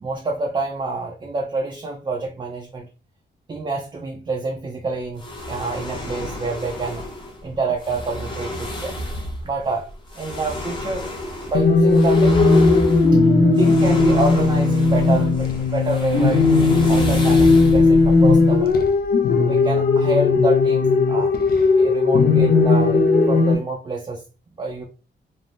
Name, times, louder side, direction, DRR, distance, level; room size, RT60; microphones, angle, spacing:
voice 1, 0.0-2.9 3.5-7.0 7.4-9.0 9.4-9.9 10.1-11.1 11.5-12.8 13.1-13.3 13.6-18.7 19.4-21.3 21.8-24.2 24.6-24.8, right 3 dB, 25° right, 0.5 m, -27 dB
sound 1, 5.2-19.1, left 1 dB, 25° left, 0.8 m, -31 dB
sound 2, 11.5-23.5, left 3 dB, 55° left, 0.5 m, -16 dB
3.3 x 2.0 x 2.5 m
cardioid pair, 115°, 18 cm